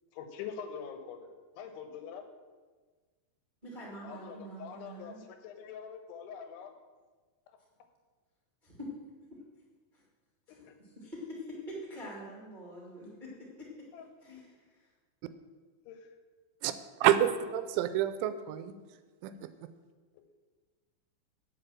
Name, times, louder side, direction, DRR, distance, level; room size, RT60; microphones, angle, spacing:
voice 1, 0.1-2.3 4.0-6.7 10.5-10.7 13.9-14.1 15.9-16.1, left 7 dB, 80° left, 7 dB, 3.4 m, -44 dB
voice 2, 3.6-5.2 8.6-8.9 9.9-10.0 10.5-13.7 14.2-14.6, equal, 20° right, -5 dB, 1.2 m, -45 dB
voice 3, 17.0-18.7 19.2-19.5, right 12 dB, 85° right, 11 dB, 3.0 m, -28 dB
9.7 x 8.0 x 7.4 m, 1.4 s
omnidirectional pair, 5.5 m